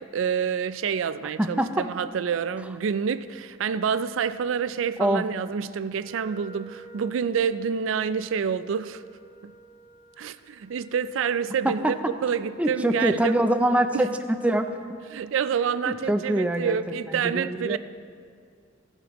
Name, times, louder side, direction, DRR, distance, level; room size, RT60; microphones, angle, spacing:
voice 1, 0.0-9.0 9.4-9.5 10.2-12.0 12.2-13.4 13.9-14.1 15.1-17.8, right 7 dB, 75° right, 0.4 m, -28 dB
voice 2, 1.4-1.8 5.0-5.2 11.6-11.9 12.6-14.1 14.4-14.8 15.9-16.8 17.1-17.8, right 1 dB, 5° right, 0.4 m, -24 dB
Wind instrument woodwind instrument, 5.9-12.5, right 4 dB, 30° right, 1.3 m, -51 dB
16.5 x 7.8 x 3.0 m
head